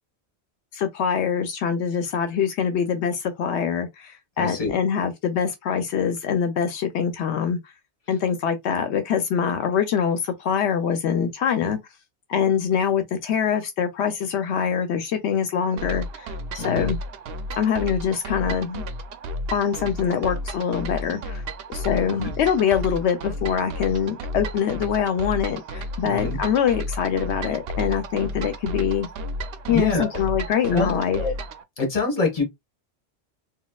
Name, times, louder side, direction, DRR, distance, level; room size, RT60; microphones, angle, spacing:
voice 1, 0.7-7.6 8.1-11.8 12.3-17.0 17.6-18.8 19.5-21.4 21.7-29.1 29.7-31.2, left 7 dB, 80° left, 0.9 m, -24 dB
voice 2, 4.4-4.7 11.6-11.7 16.6-16.9 22.2-22.3 26.0-26.4 29.7-30.1 30.7-31.3 31.8-32.4, left 3 dB, 35° left, 1.3 m, -25 dB
sound 1, 15.8-31.6, equal, 65° right, 0.8 m, -33 dB
4.1 x 2.3 x 2.3 m
omnidirectional pair, 1.1 m